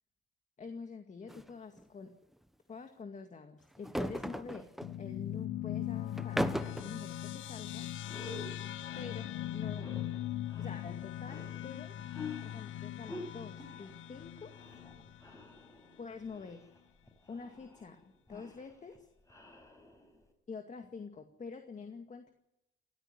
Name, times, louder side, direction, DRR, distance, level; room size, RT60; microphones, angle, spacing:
voice 1, 0.6-2.1 2.7-4.7 5.0-6.4 6.8-7.9 9.0-10.3 10.6-14.5 16.0-16.6 17.3-18.0 18.3-19.1 20.5-22.3, left 5 dB, 35° left, 6 dB, 2.1 m, -46 dB
sound 1, 1.3-1.5 1.8-1.9 3.7-4.9 6.1-6.9, equal, ahead, 1.1 m, -36 dB
sound 2, 4.8-15.6, left 12 dB, 85° left, 1.0 m, -40 dB
sound 3, 7.9-20.3, left 2 dB, 15° left, 5.3 m, -50 dB
20.0 x 13.5 x 9.6 m, 0.85 s
cardioid pair, 90°, 20 cm